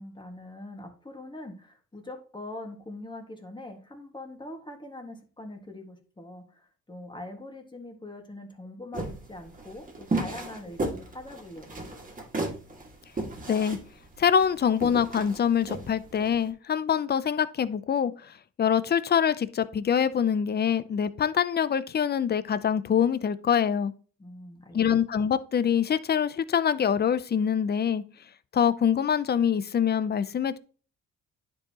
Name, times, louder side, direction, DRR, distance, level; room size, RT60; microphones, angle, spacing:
voice 1, 0.0-11.8 24.2-24.8, left 1 dB, 15° left, 1.8 m, -43 dB
sound 1, 8.9-16.4, right 2 dB, 25° right, 1.9 m, -34 dB
voice 2, 14.2-23.9 24.7-28.0 28.5-30.6, left 8 dB, 35° left, 0.5 m, -25 dB
10.5 x 4.7 x 2.9 m
cardioid pair, 90°, 30 cm